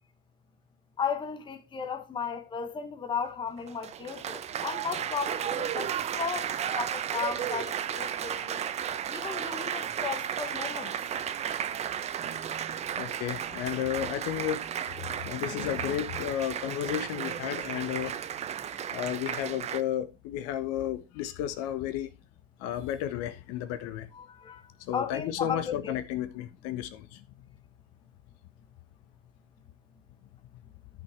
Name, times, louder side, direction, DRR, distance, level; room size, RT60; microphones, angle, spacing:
voice 1, 1.0-8.6 9.1-10.9 24.1-24.7 24.9-25.8, left 6 dB, 10° left, 0.9 m, -35 dB
Applause, 3.6-19.8, right 9 dB, 15° right, 0.6 m, -34 dB
voice 2, 13.0-14.6 15.0-18.2 18.9-22.1 22.6-24.1 24.8-27.2, left 11 dB, 40° left, 1.0 m, -33 dB
13.0 x 5.7 x 3.4 m
hypercardioid pair, 100°, 39 cm